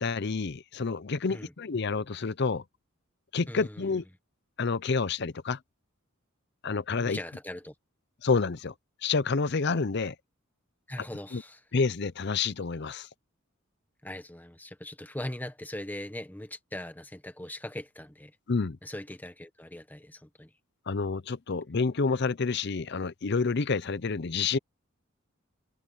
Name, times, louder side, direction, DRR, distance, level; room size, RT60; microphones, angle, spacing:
voice 1, 0.0-2.6 3.3-4.0 4.6-5.6 6.6-7.2 8.2-8.7 9.0-10.1 11.3-11.4 11.7-13.1 18.5-18.8 20.9-24.6, left 4 dB, 55° left, 0.6 m, -28 dB
voice 2, 3.5-4.0 7.0-7.7 10.9-11.6 14.0-18.4 18.8-20.5, left 1 dB, 10° left, 1.4 m, -40 dB
head